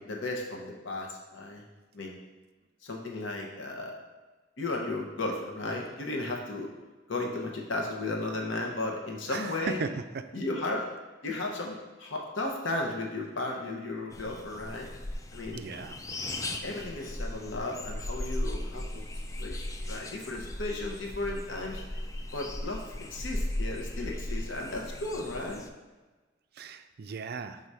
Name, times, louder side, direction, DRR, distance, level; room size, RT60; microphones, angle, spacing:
voice 1, 0.0-1.6 1.9-2.2 2.8-4.0 4.6-6.7 7.1-9.8 10.3-10.9 11.2-14.9 15.3-15.6 16.6-19.0 19.4-21.8 22.3-22.8 23.1-25.6, left 2 dB, 85° left, 1 dB, 0.9 m, -35 dB
voice 2, 9.3-10.2 15.5-16.0 26.6-27.6, right 5 dB, 55° right, 9 dB, 0.4 m, -36 dB
sound 1, 14.1-25.7, left 1 dB, 15° left, 0.3 m, -37 dB
4.7 x 3.9 x 5.5 m, 1.2 s
head